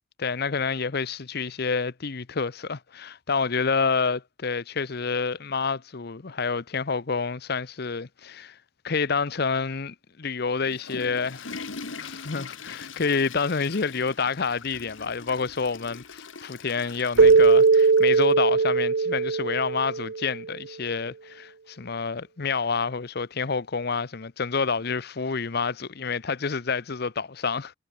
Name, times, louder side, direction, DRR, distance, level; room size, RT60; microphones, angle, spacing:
voice 1, 0.2-8.6 8.8-11.6 12.0-27.7, left 5 dB, 50° left, 0.8 m, -28 dB
Water / Toilet flush, 10.5-18.3, left 4 dB, 75° left, 1.7 m, -42 dB
Keyboard (musical), 17.2-20.4, right 4 dB, 60° right, 0.6 m, -19 dB
head